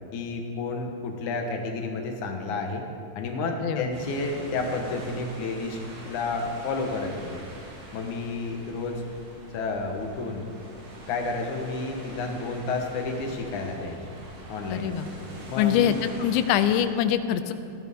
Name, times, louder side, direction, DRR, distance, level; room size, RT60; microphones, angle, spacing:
voice 1, 0.1-2.8 3.2-7.4 7.9-9.0 9.5-10.5 11.1-14.0 14.5-14.9 15.5-15.9, left 3 dB, 70° left, 2 dB, 1.9 m, -31 dB
sound 1, 3.9-16.8, right 1 dB, 80° right, 5.3 m, -43 dB
voice 2, 14.7-15.1 15.6-17.5, left 10 dB, 90° left, 10 dB, 3.0 m, -24 dB
19.0 x 14.5 x 3.6 m, 2.5 s
omnidirectional pair, 5.2 m